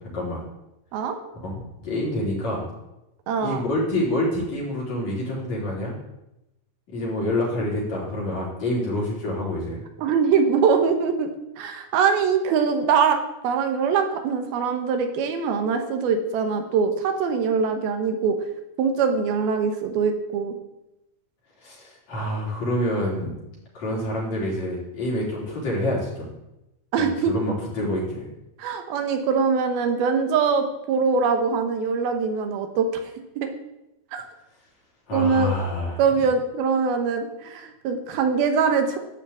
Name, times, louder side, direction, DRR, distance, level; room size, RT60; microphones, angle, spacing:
voice 1, 1.4-2.7 3.4-6.0 6.9-9.9 21.6-23.3 23.7-26.3 27.0-28.3 35.1-36.2, left 1 dB, 45° left, -5 dB, 5.4 m, -27 dB
voice 2, 3.3-3.6 10.0-11.3 11.6-18.4 18.8-20.5 26.9-27.3 28.6-33.5 34.1-34.2 35.1-35.6 36.0-39.0, right 5 dB, 80° right, 6 dB, 3.0 m, -23 dB
13.0 x 5.9 x 8.6 m, 0.91 s
omnidirectional pair, 4.4 m